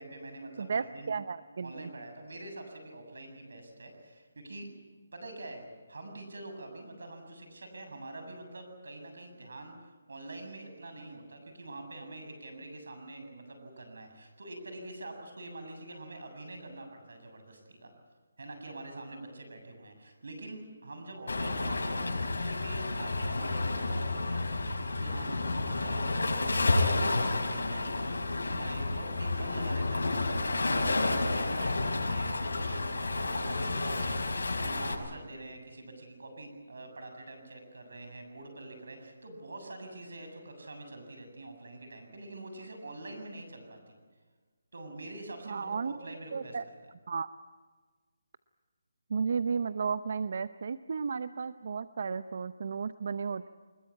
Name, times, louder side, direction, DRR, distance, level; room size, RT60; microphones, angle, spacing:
voice 1, 0.0-1.1 1.6-4.7 5.1-9.7 10.1-17.9 18.4-44.0 44.7-46.6, right 2 dB, 75° right, 6 dB, 7.6 m, -45 dB
voice 2, 0.6-1.9 45.5-46.0 46.3-46.6 47.1-47.3 49.1-53.5, right 5 dB, 50° right, 13 dB, 0.7 m, -33 dB
Waves surf, 21.3-34.9, left 2 dB, 85° left, 6.0 m, -30 dB
24.5 x 21.0 x 8.6 m, 1.4 s
hypercardioid pair, 170°, 0 cm